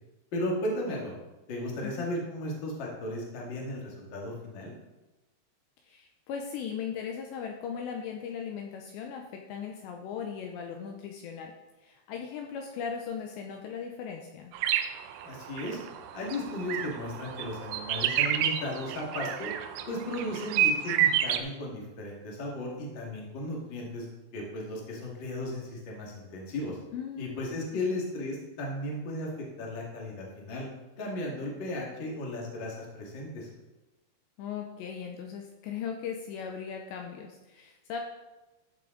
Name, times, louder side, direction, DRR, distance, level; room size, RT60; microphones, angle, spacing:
voice 1, 0.3-1.1 1.5-4.7 15.2-15.8 16.1-19.5 19.9-24.1 24.3-26.8 27.2-30.7 31.0-33.5, left 1 dB, 45° left, -2 dB, 1.5 m, -35 dB
voice 2, 5.8-11.5 11.8-14.5 26.9-27.6 34.4-38.0, left 7 dB, 80° left, 3 dB, 2.7 m, -38 dB
sound 1, 14.5-21.4, right 10 dB, 90° right, 3.3 m, -29 dB
13.5 x 7.0 x 3.9 m, 1.1 s
omnidirectional pair, 5.6 m